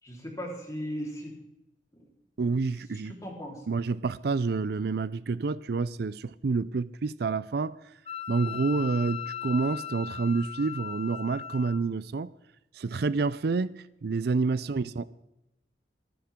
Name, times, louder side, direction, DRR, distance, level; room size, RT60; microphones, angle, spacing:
voice 1, 0.0-1.3 2.0-2.1 3.1-3.6 14.6-14.7, equal, 20° left, 3.9 m, -37 dB
voice 2, 2.4-3.1 3.7-7.7 8.3-12.3 12.7-15.0, right 4 dB, 60° right, 0.4 m, -28 dB
Wind instrument woodwind instrument, 8.1-11.8, left 10 dB, 35° left, 0.7 m, -38 dB
27.0 x 10.0 x 3.7 m
head